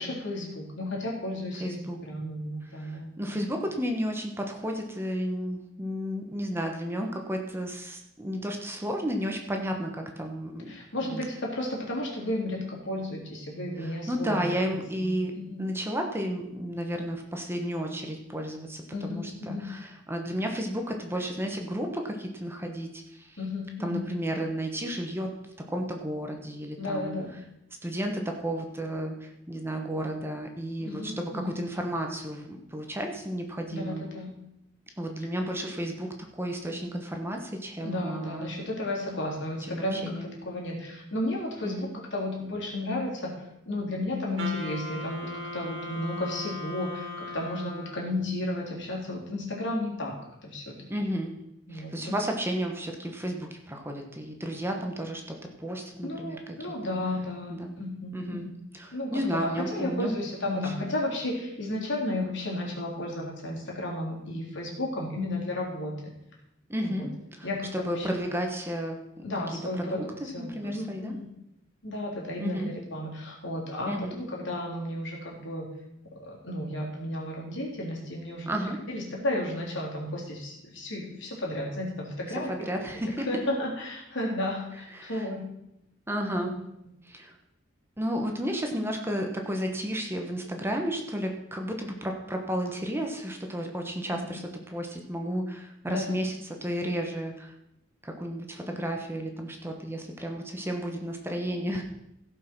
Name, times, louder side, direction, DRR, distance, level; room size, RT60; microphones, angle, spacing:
voice 1, 0.0-3.4 10.7-14.5 15.0-15.7 18.9-19.7 23.4-24.1 26.8-27.4 30.9-31.6 33.7-34.3 37.8-40.2 40.5-43.3 43.7-50.2 50.4-50.8 51.7-52.1 56.0-58.4 58.9-66.1 66.8-67.0 67.4-68.1 69.2-71.3 71.8-75.7 76.2-78.6 78.9-82.5 83.3-85.4 86.3-86.5 94.1-94.4 95.9-96.1, left 1 dB, 60° left, -2 dB, 3.5 m, -33 dB
voice 2, 1.6-2.0 2.6-10.7 11.1-11.2 13.8-15.3 15.6-23.4 23.8-25.3 25.7-27.2 27.8-34.0 35.0-38.5 39.7-40.3 41.6-41.9 50.9-51.3 51.7-55.2 55.6-56.6 57.5-57.7 58.1-58.5 58.7-60.2 60.5-61.0 66.7-71.2 72.4-72.7 73.9-74.2 78.5-78.8 82.3-83.3 84.7-85.3 86.1-86.5 87.0-87.3 88.0-97.5 98.0-101.8, equal, 10° right, 3 dB, 1.2 m, -32 dB
Wind instrument woodwind instrument, 44.4-48.2, left 2 dB, 70° right, 2.3 m, -38 dB
16.0 x 5.6 x 6.1 m, 0.84 s
head